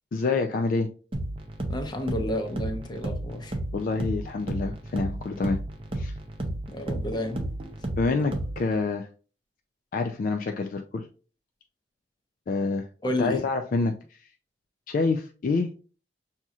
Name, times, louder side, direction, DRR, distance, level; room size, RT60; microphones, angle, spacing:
voice 1, 0.1-0.9 3.7-5.6 6.0-6.1 8.0-9.1 9.9-11.1 12.5-12.9 13.2-13.9 14.9-15.7, left 3 dB, 50° left, 0.3 m, -27 dB
sound 1, 1.1-8.8, right 1 dB, 30° right, 0.6 m, -33 dB
voice 2, 1.7-3.5 6.4-7.4 13.0-13.4, left 1 dB, 25° left, 0.7 m, -31 dB
6.0 x 2.8 x 2.3 m
head